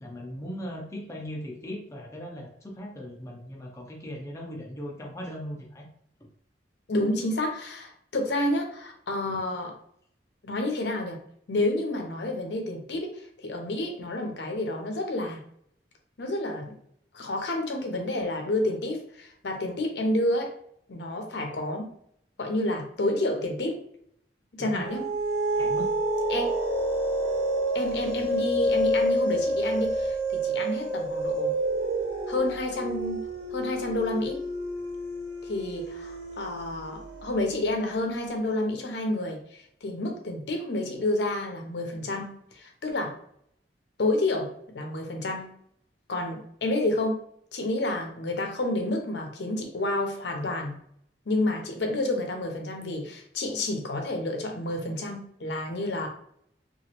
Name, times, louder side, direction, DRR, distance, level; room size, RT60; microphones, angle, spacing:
voice 1, 0.0-5.8 9.3-9.4 24.6-24.9 25.6-25.9, equal, 15° left, -1 dB, 0.5 m, -38 dB
voice 2, 6.9-9.7 10.4-11.2 11.5-15.4 16.2-16.8 17.1-20.5 20.9-21.9 22.4-23.8 24.5-25.1 26.3-26.5 27.7-31.5 32.3-34.4 35.4-43.1 44.0-45.6 46.1-47.2 47.5-50.7 51.3-56.1, left 1 dB, 75° left, 3 dB, 0.6 m, -29 dB
sound 1, 24.7-37.5, right 1 dB, 80° right, 0.7 m, -29 dB
2.9 x 2.5 x 2.9 m, 0.68 s
head